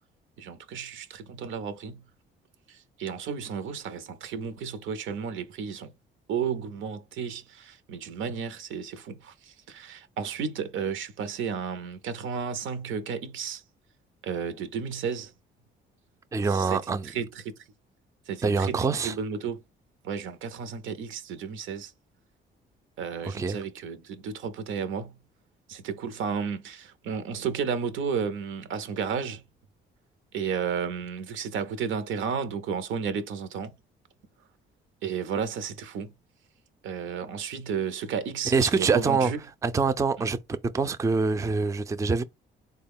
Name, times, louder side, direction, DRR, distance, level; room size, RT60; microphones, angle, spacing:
voice 1, 0.4-2.0 2.7-5.9 6.3-13.6 14.2-15.3 16.5-17.5 18.3-19.6 20.0-21.9 23.0-25.1 25.7-29.4 30.3-33.7 35.0-36.1 36.8-39.4, right 6 dB, 80° right, 0.7 m, -33 dB
voice 2, 16.3-17.1 18.4-19.1 23.2-23.6 38.5-39.3 39.6-40.4 40.6-42.2, right 4 dB, 15° right, 0.3 m, -25 dB
3.7 x 2.2 x 3.5 m
cardioid pair, 90°, 20 cm